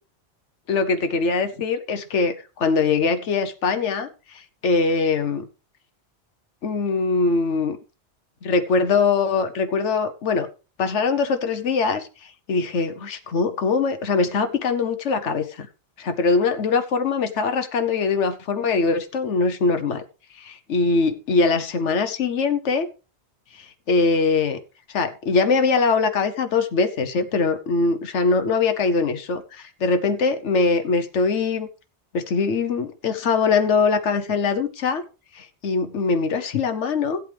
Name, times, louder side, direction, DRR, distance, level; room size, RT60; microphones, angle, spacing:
voice 1, 0.7-4.1 4.3-5.5 6.6-7.8 8.4-10.5 10.8-12.1 12.5-15.7 16.0-20.0 20.4-22.9 23.6-24.6 24.9-31.7 32.1-35.0 35.3-37.2, left 4 dB, 90° left, 8 dB, 1.2 m, -22 dB
15.5 x 8.1 x 3.4 m, 0.32 s
omnidirectional pair, 1.2 m